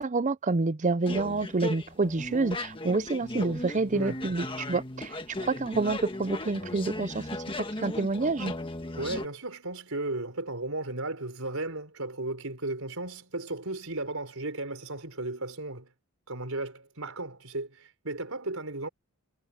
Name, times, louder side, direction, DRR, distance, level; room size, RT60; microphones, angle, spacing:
voice 1, 0.0-7.3 7.8-8.5, right 3 dB, 35° right, 0.6 m, -28 dB
sound 1, 1.0-9.3, left 2 dB, 25° left, 1.6 m, -37 dB
voice 2, 3.9-4.2 9.0-15.9 16.3-18.9, right 2 dB, 65° right, 5.5 m, -35 dB
head